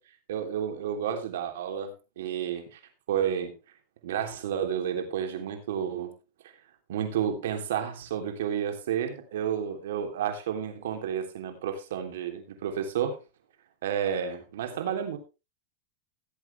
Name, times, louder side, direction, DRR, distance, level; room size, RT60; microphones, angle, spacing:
voice 1, 0.3-2.8 3.1-3.5 4.0-6.1 6.9-13.2 13.8-15.2, right 8 dB, 75° right, 3.3 m, -31 dB
17.0 x 8.3 x 3.4 m
hypercardioid pair, 120°, 0 cm